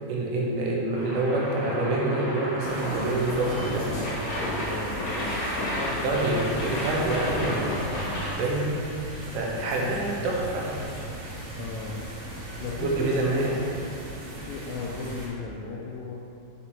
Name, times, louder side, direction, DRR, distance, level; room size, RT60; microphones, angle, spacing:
voice 1, 0.1-3.9 6.0-7.6 8.4-8.8 9.3-10.8 12.8-13.7, right 2 dB, 80° right, -3 dB, 3.4 m, -26 dB
sound 1, 0.9-8.3, left 1 dB, 60° left, 1.7 m, -32 dB
sound 2, 2.6-15.3, right 1 dB, 55° right, 3.1 m, -38 dB
voice 2, 3.8-6.6 7.4-8.3 9.5-10.0 11.6-12.0 12.6-13.6 14.4-16.1, left 3 dB, 85° left, -4 dB, 2.5 m, -36 dB
8.4 x 4.3 x 4.3 m, 2.5 s
omnidirectional pair, 5.5 m